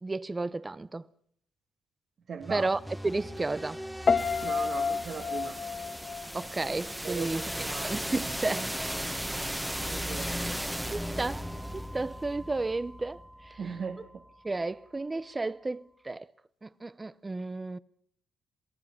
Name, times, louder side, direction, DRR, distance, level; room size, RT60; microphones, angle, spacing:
voice 1, 0.0-1.1 2.5-3.8 6.3-7.4 7.8-8.7 10.3-10.5 10.9-13.6 14.4-16.3 16.6-17.8, right 3 dB, 20° right, 0.8 m, -33 dB
voice 2, 2.3-2.7 4.4-5.6 7.0-8.0 8.6-8.7 9.9-10.3 13.6-14.2, right 6 dB, 55° right, 2.0 m, -39 dB
sound 1, 2.4-14.3, equal, 5° right, 1.6 m, -37 dB
Piano, 4.1-7.2 7.4-7.9, left 5 dB, 45° left, 1.5 m, -30 dB
27.5 x 18.0 x 5.8 m
cardioid pair, 90°, 0 cm